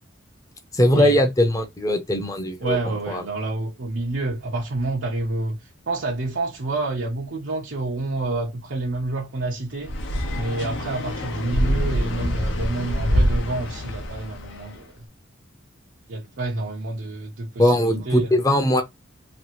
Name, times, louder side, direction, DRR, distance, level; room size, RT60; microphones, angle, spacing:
voice 1, 0.7-2.8 3.1-3.2 17.6-18.8, left 1 dB, 20° left, 0.6 m, -20 dB
voice 2, 2.6-9.9 10.3-15.1 16.1-18.3, right 2 dB, 90° right, 0.7 m, -28 dB
sound 1, 9.8-14.7, equal, 70° left, 0.7 m, -25 dB
3.0 x 2.4 x 2.9 m
head